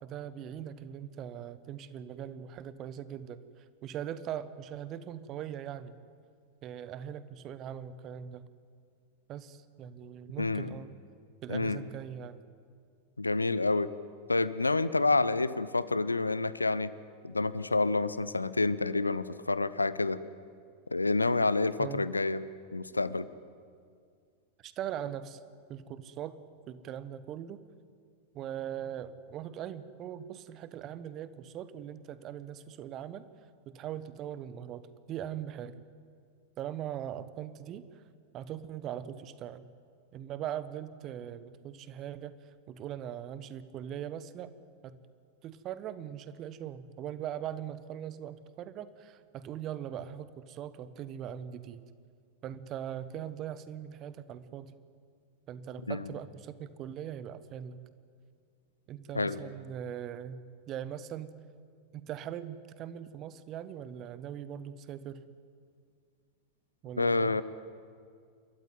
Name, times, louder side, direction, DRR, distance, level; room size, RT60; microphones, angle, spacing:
voice 1, 0.0-3.4 3.8-6.0 6.6-8.4 9.3-11.0 11.4-12.4 21.8-22.1 24.6-25.4 25.7-26.4 26.7-27.6 28.3-33.3 33.7-35.8 36.6-38.0 38.3-39.7 40.1-44.5 44.8-45.0 45.4-51.8 52.4-54.7 55.5-57.8 58.9-61.3 61.9-65.2 66.8-67.4, right 10 dB, 35° right, 15 dB, 1.2 m, -40 dB
voice 2, 10.4-10.7 11.5-11.8 13.2-13.9 14.3-16.9 17.2-20.2 20.9-22.4 22.7-23.3 55.9-56.0 59.1-59.4 67.0-67.4, left 3 dB, 80° left, 17 dB, 0.7 m, -28 dB
28.5 x 13.5 x 9.4 m, 2.2 s
figure-of-eight pair, 90°, 0 cm